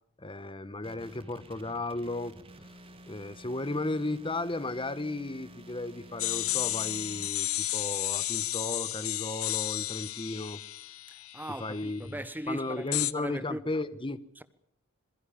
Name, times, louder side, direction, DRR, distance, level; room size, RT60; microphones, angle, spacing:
voice 1, 0.2-2.4 3.1-10.6 11.6-12.0 12.5-14.2, left 2 dB, 25° left, 1.2 m, -35 dB
sound 1, 0.8-7.3, right 1 dB, 25° right, 2.6 m, -51 dB
sound 2, 6.2-11.9 12.9-13.1, left 15 dB, 90° left, 1.0 m, -32 dB
voice 2, 11.1-13.7 14.4-14.5, right 1 dB, 10° right, 1.2 m, -39 dB
27.0 x 21.5 x 7.2 m
head